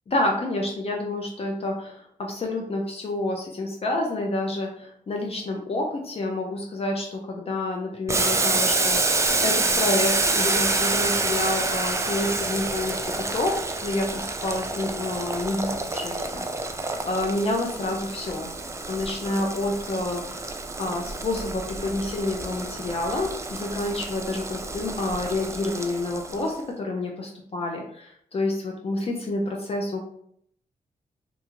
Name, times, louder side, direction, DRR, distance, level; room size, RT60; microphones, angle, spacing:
voice 1, 0.1-18.5 18.9-20.4 20.8-30.0, left 2 dB, 45° left, 0 dB, 0.5 m, -29 dB
Boiling, 8.1-26.5, right 3 dB, 20° right, 0.3 m, -28 dB
2.6 x 2.3 x 2.9 m, 0.69 s
cardioid pair, 80°, 15 cm